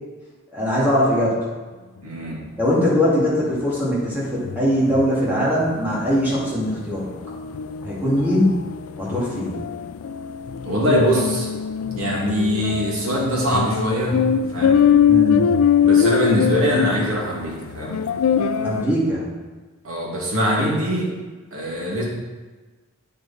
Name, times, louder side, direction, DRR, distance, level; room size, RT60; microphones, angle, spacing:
voice 1, 0.5-1.4 2.6-7.1 7.8-8.5 9.0-9.6 15.1-15.4 18.6-19.2, equal, 10° right, -8 dB, 2.8 m, -21 dB
voice 2, 2.0-2.4 10.6-11.5 11.9-14.2 14.5-14.8 15.8-18.0 19.8-21.1 21.5-22.0, equal, 80° right, -4 dB, 2.5 m, -22 dB
sound 1, 3.5-3.6 4.0-4.1 4.4-18.9, left 8 dB, 85° left, 0.4 m, -22 dB
9.1 x 6.6 x 4.3 m, 1.3 s
head